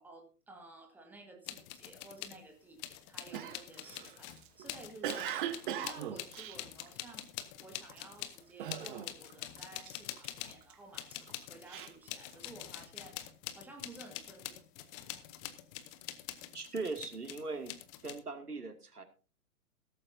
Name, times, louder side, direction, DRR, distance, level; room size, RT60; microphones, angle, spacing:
voice 1, 0.0-7.3 7.6-13.2 13.5-14.6, right 2 dB, 5° right, 3 dB, 1.8 m, -53 dB
sound 1, 1.5-2.4 2.8-10.6 10.9-18.2, left 13 dB, 20° left, 0.9 m, -45 dB
Cough, 3.3-7.4 7.9-8.2 8.6-9.3 9.6-10.7 11.3-12.8, right 10 dB, 35° right, 1.3 m, -40 dB
voice 2, 16.5-17.7 18.0-19.0, right 3 dB, 80° right, 6 dB, 2.4 m, -39 dB
16.5 x 14.0 x 2.7 m, 0.33 s
figure-of-eight pair, 120°, 45 cm